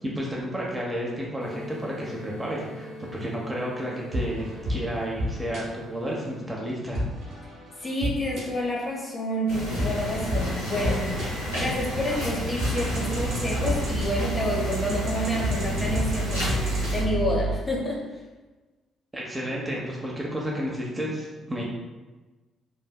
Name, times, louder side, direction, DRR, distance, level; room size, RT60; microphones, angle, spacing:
voice 1, 0.0-7.0 19.1-21.7, equal, 15° right, -3 dB, 0.6 m, -31 dB
sound 1, 1.4-6.4, equal, 45° left, 1.1 m, -42 dB
sound 2, 4.1-5.6 6.9-8.8 9.8-11.2 11.9-17.6, right 1 dB, 55° right, 1.0 m, -30 dB
voice 2, 7.8-11.1 11.5-18.0, left 1 dB, 25° left, -3 dB, 0.8 m, -29 dB
sound 3, 9.5-17.0, equal, 90° left, 0.7 m, -31 dB
3.3 x 2.6 x 2.3 m, 1.2 s
figure-of-eight pair, 45°, 0 cm